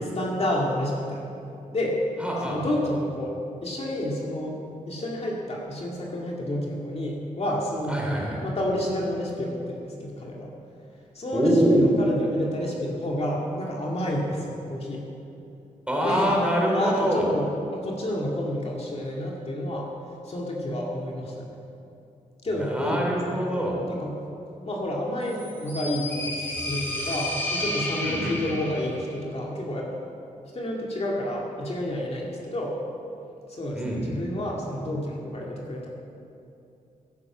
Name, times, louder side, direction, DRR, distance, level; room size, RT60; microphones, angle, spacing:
voice 1, 0.2-1.3 1.7-2.0 2.4-4.6 4.9-8.0 8.4-10.5 11.1-15.0 16.0-16.3 16.7-19.9 20.2-21.6 22.4-23.5 23.9-24.2 24.6-29.9 30.5-32.8 33.5-35.9, left 1 dB, 50° left, -2 dB, 2.3 m, -30 dB
voice 2, 2.2-2.7 7.9-8.4 11.3-11.9 15.9-17.4 22.6-23.8 28.0-28.4 33.7-34.3, equal, 10° right, -2 dB, 3.3 m, -24 dB
sound 1, 25.3-29.0, left 1 dB, 15° left, 3.4 m, -31 dB
16.0 x 9.5 x 6.1 m, 2.7 s
wide cardioid pair, 100°, 14 cm